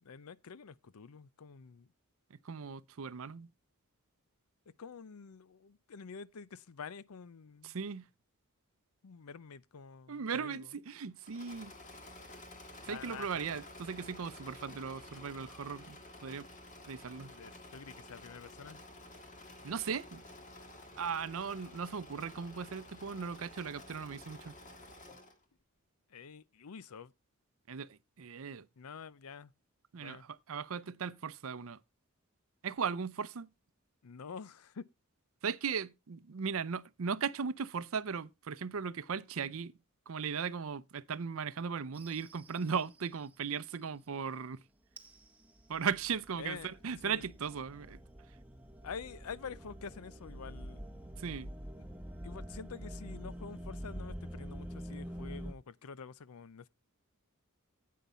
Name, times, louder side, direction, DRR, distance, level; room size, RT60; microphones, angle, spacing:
voice 1, 0.0-1.9 4.7-7.8 9.0-10.7 12.8-13.5 17.3-18.8 26.1-27.1 28.8-29.5 29.9-30.2 34.0-34.8 46.4-46.7 47.0-47.3 48.8-50.9 51.8-51.9 52.2-56.7, left 6 dB, 85° left, 0.6 m, -47 dB
voice 2, 2.4-3.5 7.6-8.1 10.1-11.7 12.8-16.5 16.9-17.3 19.6-20.2 21.0-24.5 27.7-28.7 29.9-31.8 32.6-33.5 35.4-39.7 40.1-44.6 45.7-48.0 51.2-51.5, right 6 dB, 65° right, 0.6 m, -37 dB
Engine / Mechanisms, 11.2-25.4, left 1 dB, 35° left, 1.8 m, -52 dB
sound 1, 41.9-43.1 45.0-55.5, equal, 5° right, 0.9 m, -46 dB
9.2 x 8.6 x 4.3 m
head